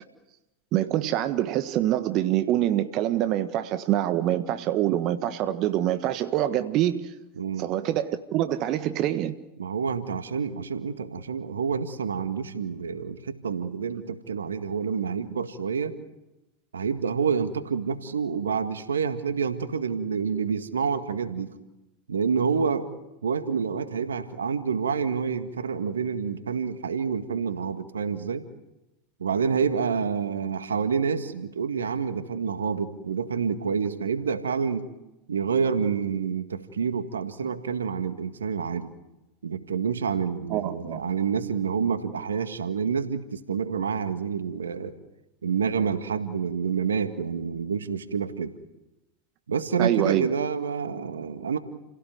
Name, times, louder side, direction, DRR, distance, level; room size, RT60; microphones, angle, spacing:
voice 1, 0.7-7.1 7.6-9.3 40.5-41.0 49.8-50.3, right 12 dB, 50° right, 10 dB, 1.5 m, -25 dB
voice 2, 7.4-7.7 9.6-16.0 16.7-21.5 22.1-22.9 23.2-28.4 29.2-34.8 35.3-38.9 39.4-44.9 45.4-48.5 49.5-51.6, right 6 dB, 85° right, 10 dB, 1.9 m, -28 dB
30.0 x 17.5 x 9.5 m, 0.97 s
hypercardioid pair, 90°, 0 cm